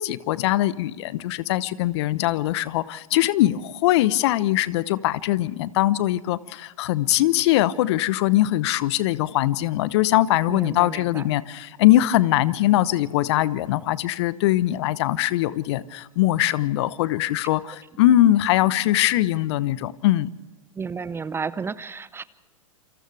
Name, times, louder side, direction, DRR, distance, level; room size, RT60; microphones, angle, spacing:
voice 1, 0.0-20.3, left 15 dB, 50° left, 17 dB, 0.9 m, -21 dB
voice 2, 10.5-11.3 20.8-22.2, right 5 dB, 15° right, 17 dB, 0.7 m, -32 dB
28.5 x 26.5 x 3.4 m, 1.2 s
figure-of-eight pair, 100°, 18 cm